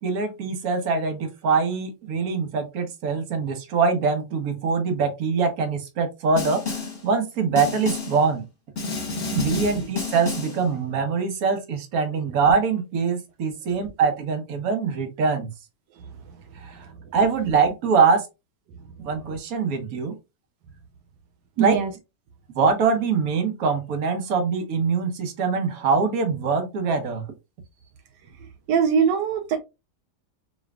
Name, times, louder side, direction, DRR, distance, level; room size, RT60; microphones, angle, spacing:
voice 1, 0.0-8.4 9.3-15.5 16.6-16.8 17.1-18.3 19.0-20.2 21.6-21.8 22.5-27.3, right 5 dB, 60° right, 1.4 m, -23 dB
Snare drum, 6.4-7.0 7.6-8.2 8.8-10.6, left 4 dB, 40° left, 1.4 m, -30 dB
voice 2, 21.6-21.9 28.7-29.6, right 7 dB, 85° right, 1.3 m, -21 dB
4.8 x 3.1 x 2.3 m
omnidirectional pair, 1.8 m